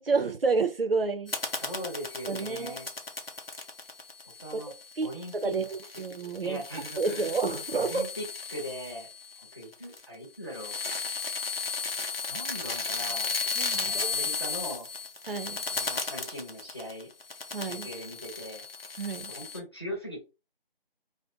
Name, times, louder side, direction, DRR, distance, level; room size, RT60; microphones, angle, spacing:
voice 1, 0.0-1.3 2.3-2.8 4.5-4.6 5.0-5.1 5.3-6.6 7.0-8.0 13.6-14.3 15.3-15.6 17.5-17.9 19.0-19.3, right 4 dB, 70° right, 0.6 m, -29 dB
sound 1, 1.3-10.1 10.5-19.6, left 4 dB, 75° left, 0.8 m, -35 dB
voice 2, 1.6-2.9 4.4-4.7 5.0-5.5 6.4-7.3 7.7-9.1 9.4-10.7 12.3-13.3 13.7-14.9 15.7-17.1 17.6-18.6 19.1-20.3, equal, 25° left, 0.8 m, -40 dB
2.5 x 2.1 x 2.5 m
figure-of-eight pair, 170°, 30 cm